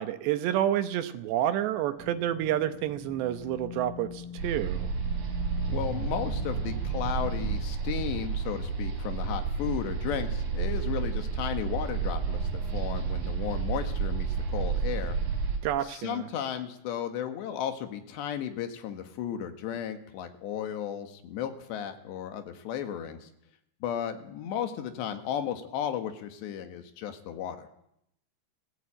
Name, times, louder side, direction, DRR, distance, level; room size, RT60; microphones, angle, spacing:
voice 1, 0.0-4.9 15.6-16.3, right 12 dB, 75° right, 10 dB, 2.8 m, -29 dB
sound 1, 2.0-7.6, left 6 dB, 5° left, 5.5 m, -44 dB
sound 2, 4.4-15.6, right 5 dB, 45° right, 4.5 m, -31 dB
voice 2, 5.7-15.2 15.8-23.3 23.8-27.7, left 9 dB, 65° left, 8 dB, 3.6 m, -34 dB
29.0 x 15.5 x 9.0 m, 0.79 s
omnidirectional pair, 5.8 m